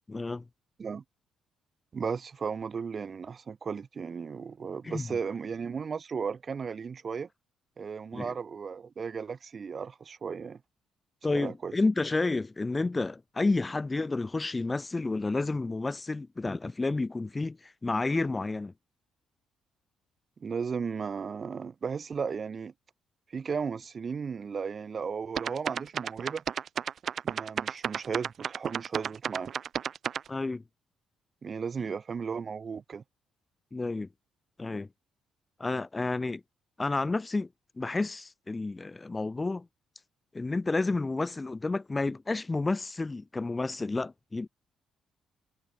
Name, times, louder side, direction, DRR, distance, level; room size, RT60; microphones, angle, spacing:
voice 1, 0.1-0.4 4.8-5.0 8.1-8.3 11.2-18.7 30.3-30.6 33.7-34.1 34.6-34.9 35.6-36.4 36.8-37.5 37.8-39.6 40.3-44.5, left 3 dB, 25° left, 0.7 m, -30 dB
voice 2, 1.9-7.3 7.8-10.6 11.3-11.7 20.4-22.7 23.3-26.4 27.2-29.5 31.4-33.0, right 6 dB, 45° right, 6.9 m, -35 dB
weird beat, 25.4-30.3, right 8 dB, 60° right, 0.7 m, -32 dB
supercardioid pair, 65°, 0 cm